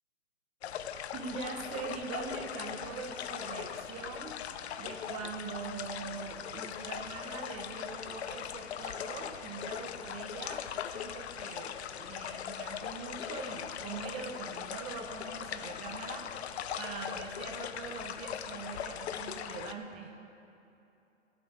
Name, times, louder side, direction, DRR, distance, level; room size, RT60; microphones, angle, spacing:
sound 1, 0.6-19.7, left 9 dB, 55° left, 0.7 m, -40 dB
voice 1, 1.1-4.3 4.8-10.6 10.9-20.1, right 4 dB, 15° right, 4 dB, 0.8 m, -42 dB
24.5 x 8.3 x 3.3 m, 2.8 s
hypercardioid pair, 145°, 38 cm